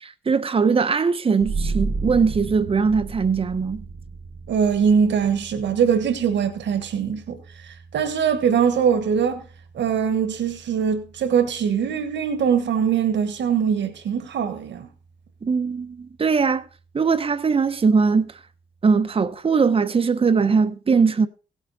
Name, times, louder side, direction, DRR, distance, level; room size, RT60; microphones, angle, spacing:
voice 1, 0.0-3.9 15.4-16.7 16.9-18.3 18.8-21.3, right 5 dB, 30° right, 0.8 m, -20 dB
sound 1, 1.4-12.7, right 4 dB, 65° right, 1.9 m, -34 dB
voice 2, 4.5-7.4 7.6-9.4 9.7-14.9, right 7 dB, 85° right, 1.5 m, -22 dB
16.5 x 8.1 x 4.1 m
wide cardioid pair, 130°, 18 cm